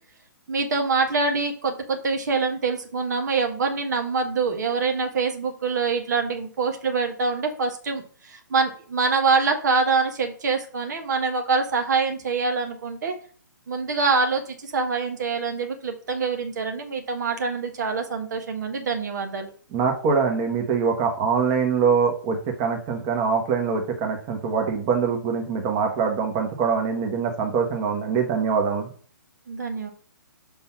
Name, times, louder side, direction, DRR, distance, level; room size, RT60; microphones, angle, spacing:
voice 1, 0.5-13.1 13.7-19.5 29.5-29.9, right 4 dB, 55° right, 4 dB, 1.4 m, -25 dB
voice 2, 19.7-28.9, right 5 dB, 30° right, 2 dB, 1.4 m, -23 dB
5.5 x 3.9 x 5.9 m, 0.43 s
figure-of-eight pair, 130°, 11 cm